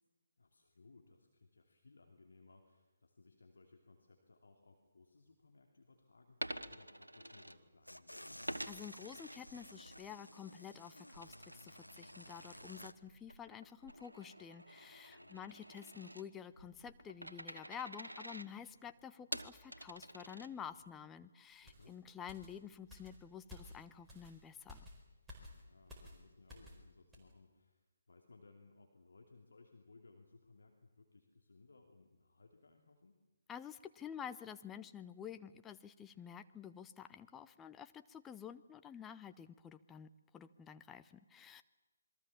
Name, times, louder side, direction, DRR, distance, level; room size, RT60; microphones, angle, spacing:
voice 1, 0.4-8.5 15.0-15.6 21.6-22.0 25.5-33.2, left 3 dB, 60° left, 3 dB, 2.8 m, -63 dB
Coin (dropping), 6.3-8.0 8.5-10.0 10.4-20.9, right 1 dB, 80° right, 1.3 m, -49 dB
sound 1, 7.9-12.9, equal, 85° left, 1.0 m, -54 dB
voice 2, 8.7-24.9 33.5-41.6, left 8 dB, 10° left, 10 dB, 0.7 m, -50 dB
sound 2, 21.7-26.8 27.1-27.3, left 2 dB, 5° right, 4.5 m, -56 dB
27.5 x 22.0 x 7.2 m, 1.2 s
figure-of-eight pair, 140°, 0 cm